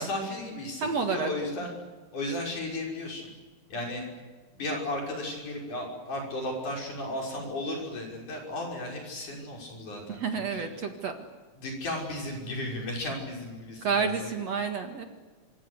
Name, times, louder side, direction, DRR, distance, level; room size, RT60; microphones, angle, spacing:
voice 1, 0.0-1.7 2.1-3.3 3.7-4.1 4.5-10.7 11.6-14.3, left 1 dB, 55° left, 1 dB, 7.4 m, -35 dB
voice 2, 0.8-1.3 10.2-11.1 13.8-15.1, right 5 dB, 50° right, 6 dB, 2.6 m, -29 dB
26.5 x 25.5 x 8.2 m, 1.4 s
omnidirectional pair, 4.2 m